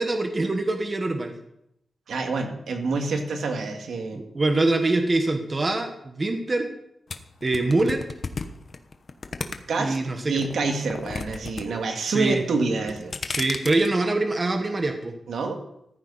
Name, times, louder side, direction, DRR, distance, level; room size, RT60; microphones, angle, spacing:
voice 1, 0.0-1.3 4.3-6.7 7.4-8.0 9.8-10.4 12.0-12.4 13.3-15.1, right 2 dB, 25° right, 5 dB, 1.4 m, -24 dB
voice 2, 2.1-4.2 9.7-10.0 10.3-13.1 15.3-15.6, right 3 dB, 80° right, 3 dB, 2.2 m, -27 dB
sound 1, 7.1-10.0 10.4-11.6 11.9-12.4 12.8-13.9, left 4 dB, 40° left, 1.0 m, -33 dB
15.0 x 14.5 x 4.2 m, 0.78 s
wide cardioid pair, 175°, 0 cm